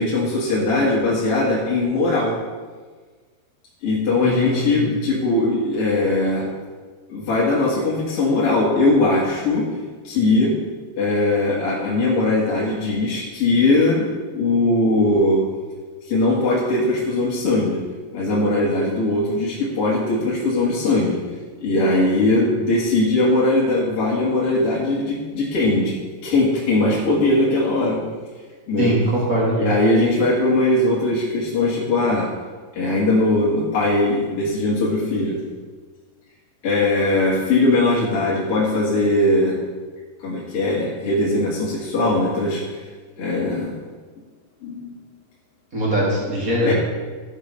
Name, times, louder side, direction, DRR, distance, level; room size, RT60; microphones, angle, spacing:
voice 1, 0.0-2.3 3.8-6.5 7.1-9.6 10.0-10.5 11.0-15.4 16.1-17.8 18.1-21.2 21.6-26.0 26.2-28.0 28.7-28.9 29.6-32.3 32.7-35.4 36.6-39.6 40.2-42.8 43.2-43.7 44.6-45.0 46.6-46.7, left 2 dB, 45° left, -6 dB, 2.0 m, -20 dB
voice 2, 4.2-4.8 28.8-29.7 45.7-46.7, right 1 dB, 25° right, -5 dB, 2.6 m, -21 dB
13.0 x 7.8 x 5.2 m, 1.4 s
omnidirectional pair, 5.0 m